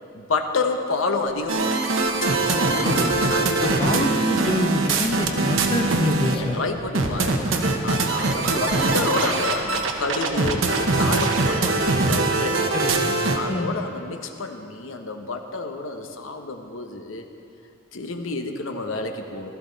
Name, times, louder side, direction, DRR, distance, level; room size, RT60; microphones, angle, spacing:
voice 1, 0.1-1.8 2.2-2.5 3.3-4.2 6.2-7.5 7.8-12.7 13.3-17.3 17.9-19.5, left 3 dB, 85° left, 5 dB, 1.0 m, -29 dB
sound 1, 1.3-1.4 1.9-10.7, right 1 dB, 45° right, 0.9 m, -39 dB
sound 2, 1.5-6.4 7.0-13.4, right 3 dB, 75° right, 1.1 m, -22 dB
voice 2, 2.8-3.2 3.6-6.6 12.7-13.1 13.5-13.8, left 1 dB, 25° left, 5 dB, 0.6 m, -26 dB
15.5 x 13.5 x 4.0 m, 2.5 s
head